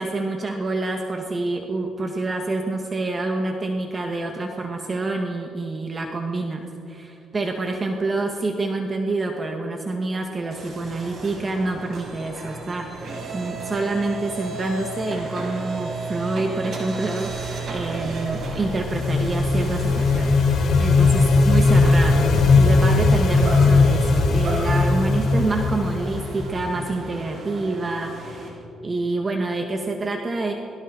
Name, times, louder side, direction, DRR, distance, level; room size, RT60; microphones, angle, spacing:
voice 1, 0.0-20.3 20.8-30.5, right 2 dB, 35° right, 2 dB, 1.9 m, -27 dB
sound 1, 10.5-28.5, right 3 dB, 60° right, 6.6 m, -34 dB
sound 2, 18.1-26.9, left 3 dB, 65° left, 6.6 m, -19 dB
28.5 x 22.5 x 4.2 m, 2.7 s
cardioid pair, 90°, 0 cm